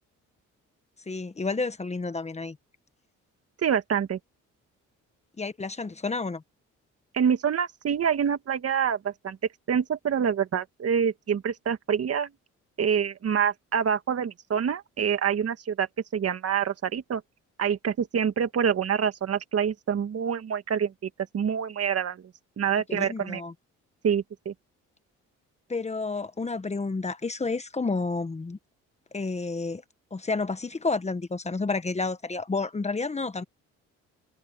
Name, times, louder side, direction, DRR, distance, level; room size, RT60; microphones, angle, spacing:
voice 1, 1.1-2.6 5.4-6.4 22.9-23.5 25.7-28.6 29.1-29.8 30.1-33.4, left 3 dB, 20° left, 1.2 m, -30 dB
voice 2, 3.6-4.2 7.1-9.4 9.7-12.3 12.8-15.9 16.1-17.2 17.6-22.2 22.6-23.4 24.0-24.5, right 7 dB, 50° right, 1.8 m, -26 dB
cardioid pair, 90°, 30 cm